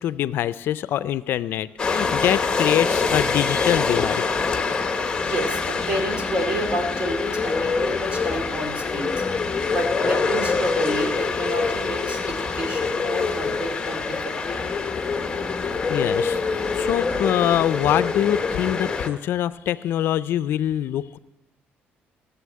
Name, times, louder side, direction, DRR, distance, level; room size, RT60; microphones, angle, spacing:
voice 1, 0.0-4.3 15.9-16.4 16.7-21.2, left 11 dB, 65° left, 16 dB, 0.4 m, -24 dB
sound 1, 1.8-19.1, left 4 dB, 20° left, 0.9 m, -25 dB
voice 2, 5.2-9.2 9.7-14.6, right 1 dB, 30° right, 3 dB, 2.3 m, -29 dB
14.5 x 7.0 x 8.3 m, 1.0 s
cardioid pair, 145°, 4 cm